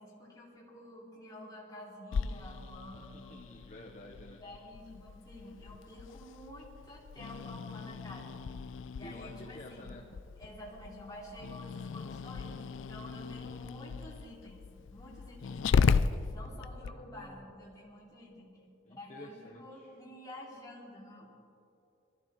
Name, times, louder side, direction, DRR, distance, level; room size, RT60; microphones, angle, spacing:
voice 1, 0.0-3.4 4.4-8.4 9.0-10.0 10.4-16.0 16.3-18.6 19.0-21.3, left 1 dB, 20° left, -4 dB, 2.7 m, -49 dB
Growling, 2.1-16.9, left 5 dB, 75° left, 0.4 m, -36 dB
voice 2, 3.0-4.4 9.0-10.1 16.8-17.5 18.8-20.0, left 1 dB, 35° left, 0 dB, 0.9 m, -51 dB
22.0 x 14.0 x 3.0 m, 2.7 s
head